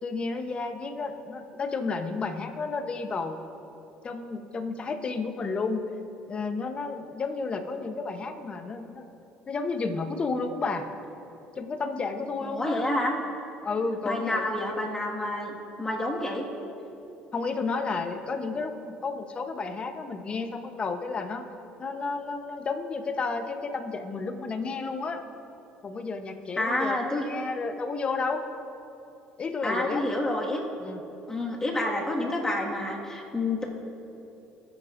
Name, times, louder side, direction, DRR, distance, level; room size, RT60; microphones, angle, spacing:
voice 1, 0.0-3.4 4.0-5.9 6.3-9.1 9.5-10.9 11.6-12.9 13.6-14.5 17.3-21.4 21.8-25.2 25.8-28.4 29.4-30.1 30.8-31.0, left 4 dB, 30° left, 6 dB, 0.9 m, -31 dB
voice 2, 12.4-13.1 14.0-16.5 26.6-27.2 29.6-30.6 31.3-33.6, left 1 dB, 15° left, -2 dB, 1.9 m, -29 dB
19.0 x 9.4 x 2.6 m, 2.9 s
cardioid pair, 105°, 3 cm